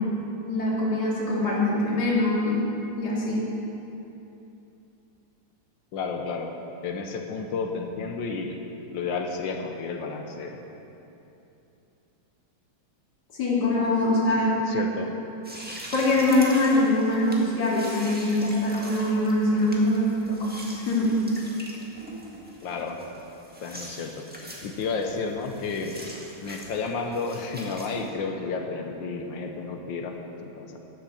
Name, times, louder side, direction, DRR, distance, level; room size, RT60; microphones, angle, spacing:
voice 1, 0.5-2.6 3.0-3.5 13.4-14.7 15.9-21.2, left 1 dB, 50° left, -6 dB, 2.9 m, -23 dB
voice 2, 5.9-6.5 6.8-8.6 8.9-10.6 14.7-15.1 22.6-23.0 23.6-24.2 24.6-25.9 26.4-30.8, left 4 dB, 70° left, 3 dB, 1.6 m, -31 dB
sound 1, 15.4-28.1, equal, 5° right, 1.3 m, -43 dB
14.0 x 11.0 x 4.3 m, 2.9 s
omnidirectional pair, 2.3 m